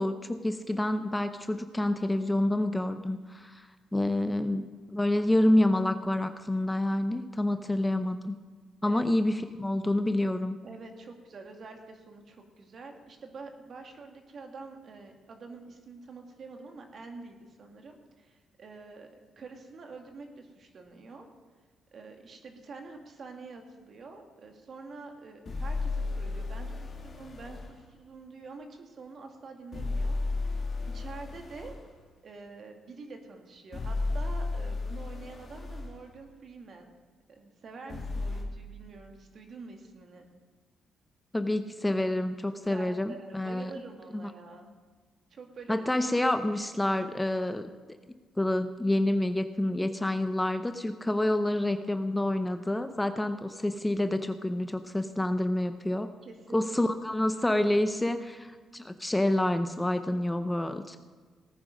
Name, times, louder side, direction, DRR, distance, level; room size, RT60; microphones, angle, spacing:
voice 1, 0.0-8.4 8.8-10.6 41.3-43.7 44.1-44.3 45.7-47.7 48.4-56.1 56.5-61.0, left 1 dB, 10° left, 9 dB, 0.7 m, -28 dB
voice 2, 10.6-19.1 19.4-21.3 21.9-31.7 32.2-36.9 37.3-40.3 42.7-44.7 45.3-45.8 56.2-56.7, right 4 dB, 50° right, 4 dB, 2.2 m, -46 dB
sound 1, 25.5-27.7 29.7-31.8 33.7-35.9 37.9-38.4, left 3 dB, 40° left, 2.2 m, -33 dB
18.5 x 9.6 x 5.3 m, 1.5 s
cardioid pair, 90°, 0 cm